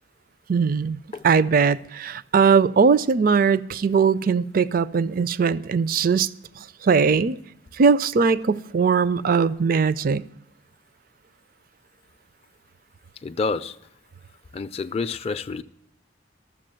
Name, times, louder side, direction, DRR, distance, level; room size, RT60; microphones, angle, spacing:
voice 1, 0.5-1.0 1.2-6.3 6.8-7.4 7.8-10.2, right 5 dB, 50° right, 0.4 m, -20 dB
voice 2, 13.2-13.8 14.5-15.6, left 4 dB, 35° left, 0.4 m, -28 dB
13.0 x 7.2 x 7.5 m
head